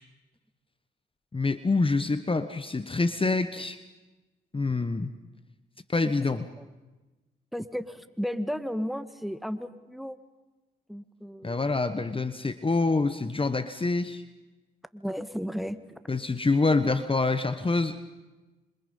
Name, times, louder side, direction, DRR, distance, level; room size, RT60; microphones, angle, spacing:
voice 1, 1.3-3.8 4.5-5.1 5.9-6.5 11.4-14.2 16.1-18.0, left 3 dB, 25° left, 11 dB, 1.2 m, -26 dB
voice 2, 7.5-10.2 10.9-11.6 14.9-15.8, equal, ahead, 11 dB, 1.8 m, -34 dB
27.0 x 25.5 x 5.5 m, 1.1 s
supercardioid pair, 50°, 21 cm